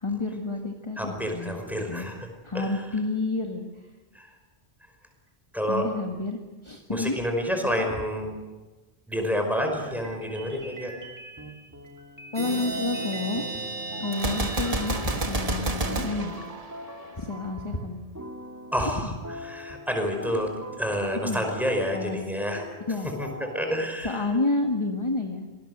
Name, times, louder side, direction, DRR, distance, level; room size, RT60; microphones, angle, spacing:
voice 1, 0.0-1.6 1.9-2.1 2.4-3.7 5.7-7.1 7.6-7.7 12.3-13.4 14.0-16.3 17.2-18.0 18.8-18.9 21.2-21.4 21.9-22.2 22.9-23.1 24.0-25.5, left 3 dB, 30° left, 3 dB, 1.8 m, -29 dB
voice 2, 1.0-2.3 2.5-2.8 4.1-4.3 5.5-5.9 6.9-8.3 9.1-10.9 18.7-20.5 20.8-22.6 23.2-24.3, equal, ahead, 3 dB, 5.4 m, -29 dB
sound 1, 9.7-17.9 18.2-23.7, equal, 15° right, 2.4 m, -43 dB
sound 2, 12.3-15.9, right 3 dB, 75° right, 5.0 m, -35 dB
Gunshot gunfire, 14.1-17.2, right 2 dB, 35° right, 1.6 m, -29 dB
26.5 x 20.0 x 8.0 m, 1.2 s
omnidirectional pair, 1.0 m